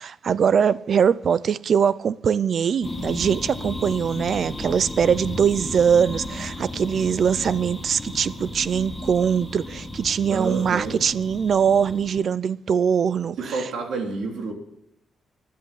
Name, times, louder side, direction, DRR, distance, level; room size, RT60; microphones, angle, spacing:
voice 1, 0.0-13.6, right 7 dB, 45° right, 0.4 m, -22 dB
sound 1, 2.8-12.2, left 2 dB, 10° left, 1.8 m, -34 dB
voice 2, 10.3-11.0 13.4-14.5, right 3 dB, 70° right, 3.6 m, -29 dB
14.0 x 11.0 x 7.5 m
cardioid pair, 155°, 0 cm